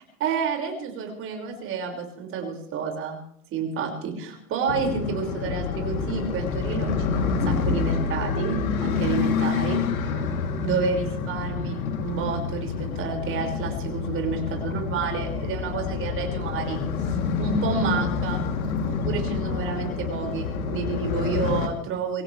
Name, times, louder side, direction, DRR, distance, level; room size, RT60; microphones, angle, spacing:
voice 1, 0.2-3.2 3.5-9.8 10.6-18.4 18.9-22.2, right 5 dB, 30° right, 2 dB, 5.7 m, -30 dB
sound 1, 4.7-21.7, left 5 dB, 75° left, 3.3 m, -28 dB
24.5 x 17.0 x 3.4 m, 0.69 s
hypercardioid pair, 130°, 42 cm